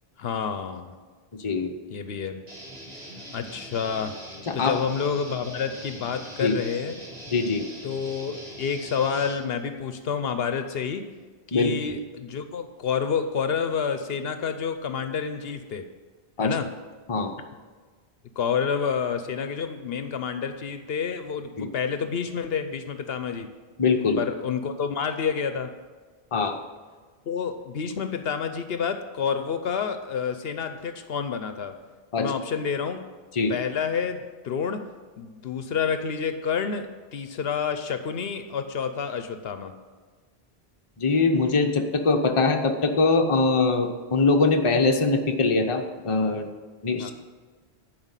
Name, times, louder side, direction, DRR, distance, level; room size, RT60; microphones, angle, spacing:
voice 1, 0.2-0.9 1.9-2.4 3.3-4.1 4.5-6.9 7.8-11.1 11.5-15.8 16.4-16.7 18.4-23.5 24.2-25.7 27.3-31.7 32.2-33.0 33.5-34.8 35.2-39.7 47.0-47.1, left 6 dB, 70° left, 9 dB, 0.9 m, -29 dB
voice 2, 1.4-1.7 4.5-4.7 6.4-6.5 7.3-7.6 11.5-11.7 16.4-16.6 17.1-17.3 21.6-21.7 23.8-24.2 26.3-26.6 32.1-32.3 33.3-33.5 41.0-46.5 46.8-47.1, left 3 dB, 35° left, 4 dB, 0.8 m, -22 dB
Guitar, 2.5-9.3, equal, 75° right, 2.5 m, -42 dB
11.0 x 4.8 x 8.1 m, 1.4 s
omnidirectional pair, 1.1 m